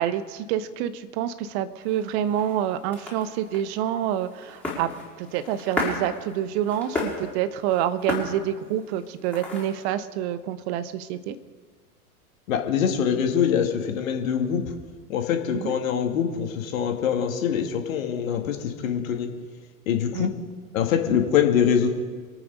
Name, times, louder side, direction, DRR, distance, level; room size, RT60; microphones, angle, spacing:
voice 1, 0.0-4.9 5.2-11.4 15.5-15.7 20.1-20.3, right 11 dB, 45° right, 13 dB, 1.1 m, -27 dB
sound 1, 1.8-9.9, left 2 dB, 5° left, 5.3 m, -35 dB
voice 2, 12.5-14.6 15.1-19.3 19.9-20.3 20.7-21.9, left 8 dB, 60° left, 4 dB, 2.3 m, -24 dB
27.0 x 9.2 x 5.3 m, 1.5 s
figure-of-eight pair, 90°, 45 cm